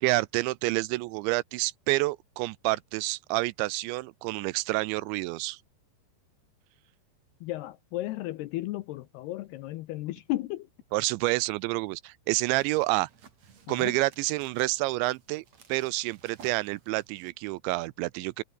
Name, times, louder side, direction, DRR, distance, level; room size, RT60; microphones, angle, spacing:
voice 1, 0.0-5.6 10.9-13.1 13.7-15.4 15.7-18.4, right 21 dB, 85° right, 2.8 m, -28 dB
voice 2, 7.4-10.7 13.7-14.0, left 16 dB, 75° left, 2.5 m, -34 dB
sound 1, 12.2-17.3, right 6 dB, 40° right, 3.6 m, -57 dB
omnidirectional pair, 5.4 m